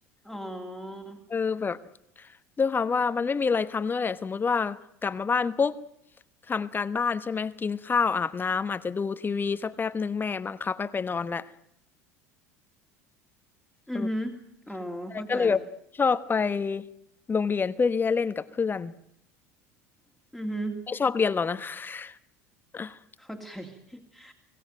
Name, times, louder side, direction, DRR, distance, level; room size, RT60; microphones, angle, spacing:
voice 1, 0.2-1.2 13.9-14.4 14.7-15.6 20.3-20.8 23.2-24.3, equal, ahead, 2 dB, 2.6 m, -35 dB
voice 2, 1.3-1.8 2.2-2.3 2.6-5.8 6.5-11.5 13.9-14.1 15.1-15.6 16.0-16.9 17.3-18.9 20.9-22.2 22.7-23.0, left 5 dB, 25° left, 13 dB, 1.1 m, -27 dB
25.5 x 16.5 x 9.1 m, 0.76 s
hypercardioid pair, 75°, 8 cm